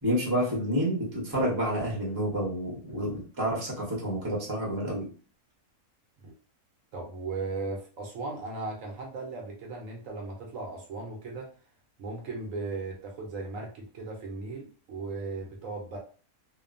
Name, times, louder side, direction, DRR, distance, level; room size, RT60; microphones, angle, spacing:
voice 1, 0.0-5.1, equal, 20° right, -4 dB, 0.6 m, -29 dB
voice 2, 6.9-11.5 12.0-16.0, right 3 dB, 65° right, 0 dB, 0.9 m, -37 dB
2.8 x 2.2 x 2.4 m, 0.38 s
omnidirectional pair, 1.6 m